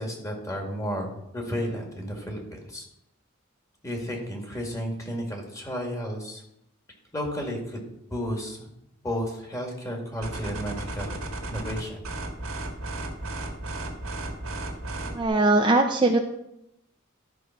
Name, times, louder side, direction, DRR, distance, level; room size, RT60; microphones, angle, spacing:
voice 1, 0.0-2.8 3.8-6.4 7.1-7.9 8.1-8.7 9.0-11.2 11.5-12.0, equal, 15° left, 0 dB, 2.1 m, -32 dB
sound 1, 10.2-15.3, right 2 dB, 85° right, 1.8 m, -34 dB
voice 2, 15.0-16.2, right 2 dB, 20° right, 3 dB, 0.6 m, -21 dB
12.0 x 4.9 x 5.9 m, 0.81 s
head